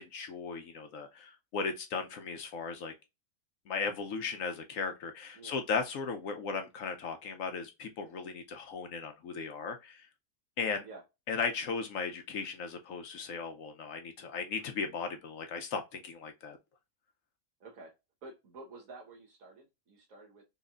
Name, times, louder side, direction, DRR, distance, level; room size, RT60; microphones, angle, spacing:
voice 1, 0.0-2.9 3.7-10.1 10.6-10.9 11.3-16.6, left 5 dB, 65° left, 1.0 m, -36 dB
voice 2, 17.6-18.0 18.2-20.4, right 3 dB, 60° right, 1.5 m, -50 dB
4.1 x 3.1 x 2.4 m
omnidirectional pair, 1.6 m